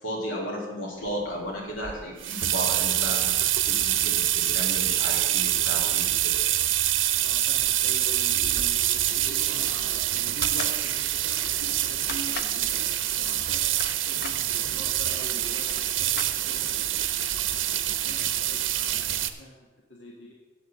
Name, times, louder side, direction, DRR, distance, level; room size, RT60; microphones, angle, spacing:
voice 1, 0.0-6.4, equal, 85° left, -2 dB, 2.6 m, -34 dB
sound 1, 1.8-19.3, right 12 dB, 85° right, 0.7 m, -26 dB
voice 2, 7.1-20.3, equal, 70° left, -1 dB, 1.4 m, -44 dB
sound 2, 10.4-10.8 12.1-12.6 13.5-14.4 15.2-15.3 15.5-16.7, left 5 dB, 50° left, 0.8 m, -38 dB
8.2 x 6.9 x 7.2 m, 1.2 s
head